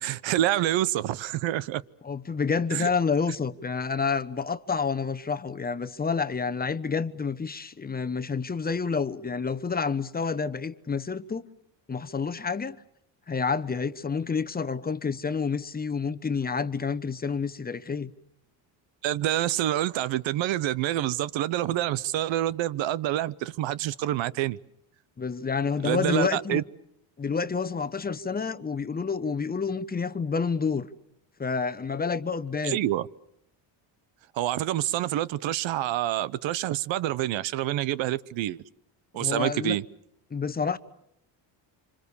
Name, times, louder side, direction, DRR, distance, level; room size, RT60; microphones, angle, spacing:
voice 1, 0.0-1.8 2.7-2.9 19.0-24.6 25.8-26.6 32.6-33.1 34.3-38.6 39.1-39.8, right 13 dB, 70° right, 1.0 m, -27 dB
voice 2, 2.0-11.5 11.9-12.8 13.3-18.1 25.2-26.6 27.2-30.9 31.4-32.8 39.1-39.8 40.3-40.8, left 5 dB, 20° left, 1.0 m, -29 dB
26.5 x 26.5 x 7.1 m
cardioid pair, 115°, 47 cm